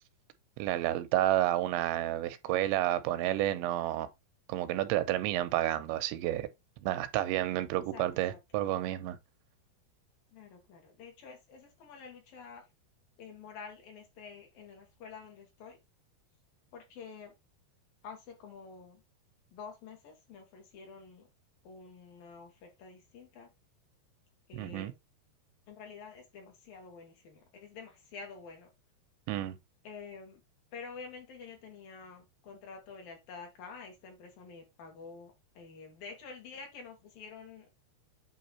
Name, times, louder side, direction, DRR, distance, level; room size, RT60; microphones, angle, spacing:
voice 1, 0.6-4.1 4.5-6.5 6.8-9.2 24.5-24.9 29.3-29.6, right 14 dB, 90° right, 3.0 m, -30 dB
voice 2, 10.3-12.6 13.2-15.8 16.7-17.3 18.0-19.0 19.5-21.3 21.6-23.5 24.5-24.9 25.7-28.7 29.8-30.4 30.7-37.7, left 5 dB, 60° left, 3.2 m, -48 dB
8.6 x 3.1 x 4.2 m
omnidirectional pair, 5.1 m